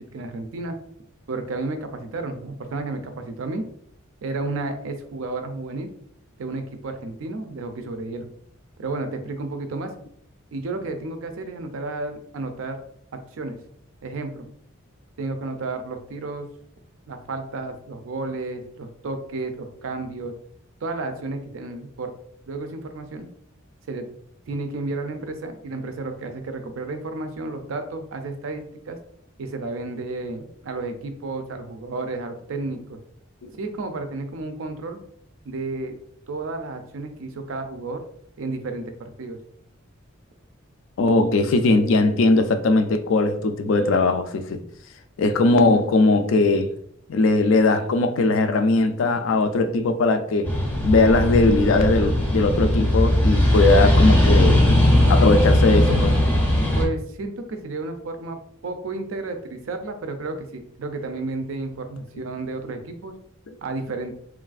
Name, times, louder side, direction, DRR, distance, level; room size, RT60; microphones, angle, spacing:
voice 1, 0.1-0.8 1.3-3.6 4.2-5.9 6.4-8.3 8.8-9.9 10.5-12.8 13.3-13.6 14.0-14.5 15.2-16.5 17.1-20.3 20.8-22.1 22.5-23.3 23.9-24.1 24.5-29.0 29.4-33.0 33.6-35.0 35.5-36.0 36.3-38.0 38.4-39.4 56.7-58.4 58.6-63.1 63.6-64.1, right 3 dB, 75° right, 0.4 m, -32 dB
voice 2, 41.0-44.6 45.2-46.7 47.1-50.5 50.8-54.6 55.1-56.2 63.5-63.6, left 3 dB, 70° left, 0.3 m, -19 dB
sound 1, 50.4-56.9, left 1 dB, 10° left, 0.5 m, -18 dB
3.1 x 2.4 x 2.4 m
head